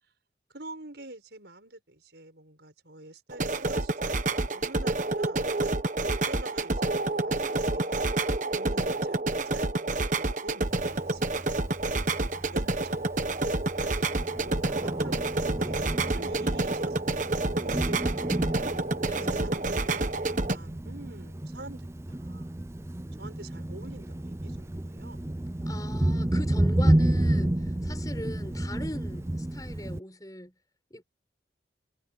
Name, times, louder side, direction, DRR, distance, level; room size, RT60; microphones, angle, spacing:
voice 1, 0.5-5.4 6.0-8.0 8.5-11.5 12.2-13.1 13.7-18.7 19.2-22.5 23.2-25.3, right 2 dB, 65° right, 6.2 m, -46 dB
sound 1, 3.3-20.6, right 2 dB, 40° right, 1.2 m, -28 dB
Thunder, 10.6-30.0, right 1 dB, 15° right, 0.5 m, -31 dB
voice 2, 18.9-19.6 25.7-30.5 30.9-31.0, left 1 dB, 20° left, 7.5 m, -41 dB
head